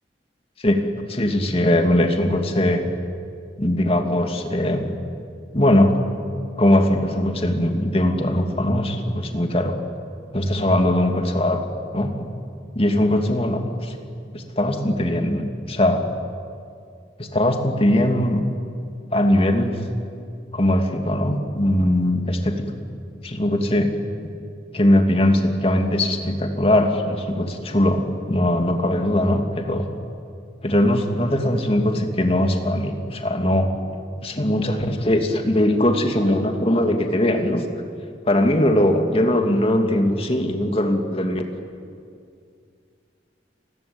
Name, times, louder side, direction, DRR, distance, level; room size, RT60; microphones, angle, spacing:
voice 1, 0.6-2.8 3.6-4.9 5.5-5.9 6.6-9.8 10.3-11.6 11.9-12.1 12.8-13.9 14.3-16.0 17.2-18.5 19.1-19.8 20.5-22.6 23.2-23.9 24.7-29.9 30.6-33.7 34.2-37.6 38.3-41.4, left 1 dB, 35° left, 4 dB, 2.6 m, -20 dB
30.0 x 20.5 x 8.9 m, 2.4 s
head